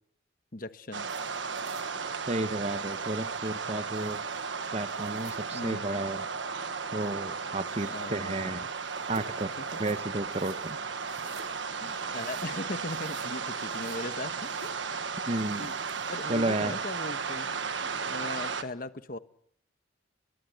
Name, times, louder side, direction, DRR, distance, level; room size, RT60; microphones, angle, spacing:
voice 1, 0.5-1.1 5.5-5.8 7.9-8.7 9.4-9.6 11.8-14.8 15.6-15.7 16.1-17.5 17.8-19.2, left 2 dB, 45° left, 11 dB, 1.2 m, -39 dB
sound 1, 0.9-18.6, right 5 dB, 75° right, 1.4 m, -35 dB
sound 2, 1.1-17.4, right 4 dB, 50° right, 3.8 m, -55 dB
voice 2, 2.3-4.2 4.7-6.3 6.9-8.6 9.1-9.5 9.8-10.8 15.3-15.7 16.3-16.7, right 2 dB, 35° right, 11 dB, 1.1 m, -32 dB
23.0 x 22.5 x 8.0 m, 0.71 s
head